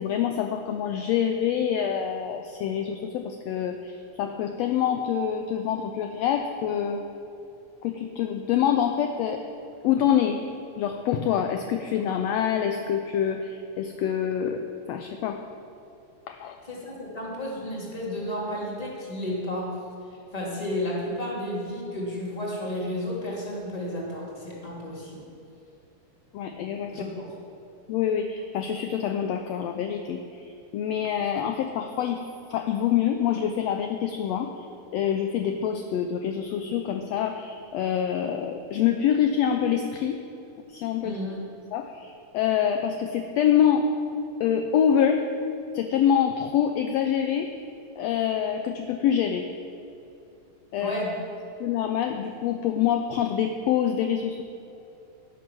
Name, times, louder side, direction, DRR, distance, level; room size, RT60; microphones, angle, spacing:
voice 1, 0.0-7.0 7.8-9.4 9.8-10.4 10.8-15.4 16.3-16.6 26.3-26.9 27.9-32.2 32.5-34.5 34.9-40.2 40.7-41.2 41.7-43.9 44.4-45.2 45.7-47.5 48.0-49.5 50.7-50.9 51.6-54.4, left 9 dB, 75° left, 5 dB, 1.6 m, -26 dB
voice 2, 16.6-19.7 20.3-25.2 26.9-27.3 41.0-41.4 50.8-51.1, left 1 dB, 15° left, -4 dB, 2.4 m, -32 dB
11.0 x 10.5 x 6.1 m, 2.7 s
omnidirectional pair, 3.5 m